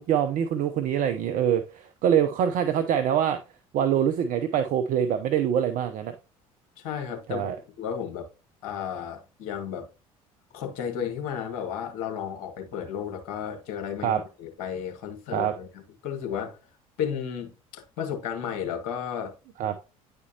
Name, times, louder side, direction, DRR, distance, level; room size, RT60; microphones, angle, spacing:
voice 1, 0.0-3.4 3.7-6.1 7.3-7.5 14.0-14.2 15.3-15.5 19.6-19.8, right 9 dB, 50° right, 0.7 m, -24 dB
voice 2, 6.8-7.5 7.8-8.3 8.6-9.9 10.5-16.6 17.0-19.3, left 8 dB, 65° left, 2.1 m, -33 dB
9.7 x 4.4 x 2.9 m
figure-of-eight pair, 60°, 18 cm